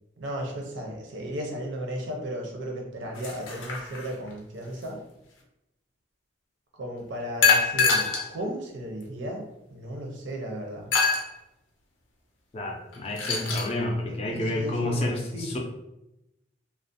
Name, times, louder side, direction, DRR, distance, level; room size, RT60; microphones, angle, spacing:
voice 1, 0.2-5.0 6.7-9.4 9.7-10.9 14.1-15.6, equal, 75° right, 1 dB, 0.5 m, -35 dB
sound 1, 3.1-4.3 7.4-8.3 9.0-9.1 10.9-11.3 12.9-13.7, left 4 dB, 90° left, 0.5 m, -24 dB
voice 2, 12.5-15.6, left 1 dB, 30° left, 1 dB, 0.3 m, -29 dB
2.4 x 2.0 x 2.5 m, 0.89 s
head